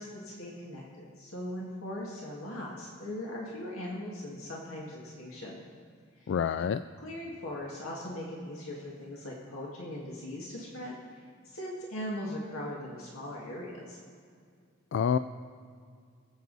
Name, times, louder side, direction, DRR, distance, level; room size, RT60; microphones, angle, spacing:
voice 1, 0.0-5.6 6.1-6.3 7.0-14.0, left 1 dB, 85° left, -3 dB, 2.0 m, -40 dB
voice 2, 6.3-6.8 14.9-15.2, left 7 dB, 60° left, 12 dB, 0.3 m, -27 dB
24.5 x 8.2 x 4.1 m, 2.2 s
head